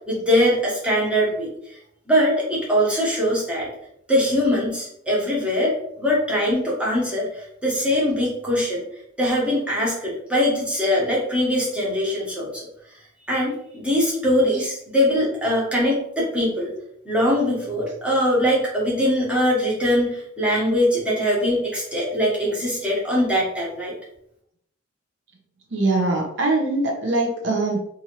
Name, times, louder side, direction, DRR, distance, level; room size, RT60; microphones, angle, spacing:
voice 1, 0.1-1.8 2.1-3.7 4.1-8.8 9.2-12.7 13.3-16.7 17.0-23.9, equal, 5° right, -6 dB, 0.9 m, -22 dB
voice 2, 25.7-27.8, right 2 dB, 65° right, 0 dB, 0.6 m, -22 dB
2.7 x 2.5 x 2.9 m, 0.72 s
head